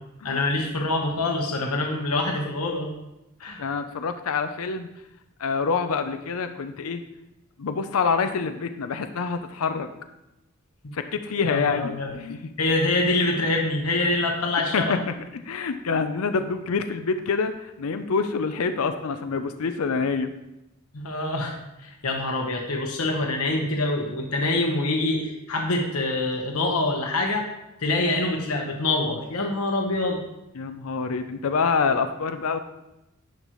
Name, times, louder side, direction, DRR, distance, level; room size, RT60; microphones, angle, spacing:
voice 1, 0.2-2.9 3.4-3.6 10.8-10.9 11.4-12.1 12.6-14.9 20.9-21.5 21.8-27.5 27.8-30.2, left 2 dB, 85° left, 1 dB, 1.2 m, -25 dB
voice 2, 3.6-4.9 5.4-7.0 7.6-9.9 10.9-12.4 14.7-20.3 30.6-32.6, left 5 dB, 70° left, 8 dB, 0.5 m, -26 dB
10.5 x 5.3 x 3.1 m, 0.93 s
head